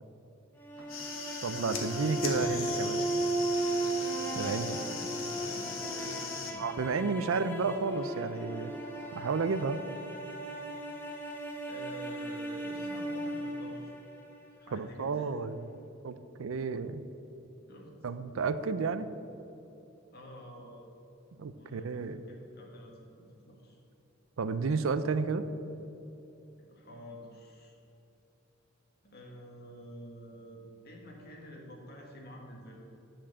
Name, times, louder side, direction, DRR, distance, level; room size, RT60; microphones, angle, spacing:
sound 1, 0.6-14.7, right 1 dB, 10° left, 0.9 m, -36 dB
sound 2, 0.8-6.5, left 4 dB, 80° left, 1.3 m, -39 dB
voice 1, 1.4-3.1 4.3-4.8 6.6-8.7 9.1-9.8 14.7-15.7 16.0-17.1 18.0-19.1 21.4-22.2 24.4-25.4, right 4 dB, 80° right, 13 dB, 0.5 m, -32 dB
voice 2, 4.3-6.8 7.1-7.3 11.7-13.9 14.6-15.4 17.7-17.9 20.1-20.9 21.5-23.8 26.6-27.8 29.0-32.8, equal, 50° left, -1 dB, 1.7 m, -49 dB
10.0 x 4.4 x 7.3 m, 2.8 s
head